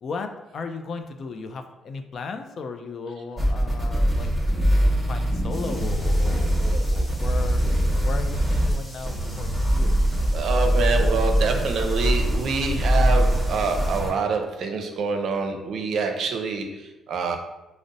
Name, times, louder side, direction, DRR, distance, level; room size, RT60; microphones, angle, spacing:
voice 1, 0.0-4.3 5.1-7.6 8.0-10.0, left 4 dB, 55° left, 7 dB, 0.3 m, -36 dB
sound 1, 3.4-14.1, equal, 15° right, 0.9 m, -22 dB
sound 2, 5.5-14.0, equal, 20° left, 1.0 m, -45 dB
voice 2, 10.3-17.4, right 4 dB, 70° right, 4 dB, 0.5 m, -26 dB
5.0 x 2.0 x 2.6 m, 0.97 s
cardioid pair, 90°, 0 cm